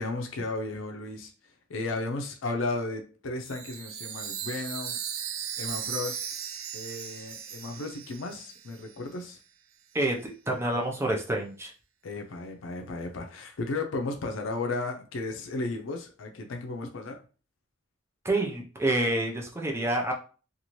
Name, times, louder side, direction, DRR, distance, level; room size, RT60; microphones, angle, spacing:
voice 1, 0.0-5.0 5.6-6.2 6.7-9.4 12.0-17.2, left 2 dB, 75° left, 4 dB, 0.5 m, -34 dB
Chime, 3.4-9.0, right 8 dB, 80° right, 0.4 m, -37 dB
voice 2, 9.9-11.7 18.2-20.1, right 1 dB, 15° right, 0 dB, 0.6 m, -28 dB
2.7 x 2.5 x 3.0 m, 0.37 s
head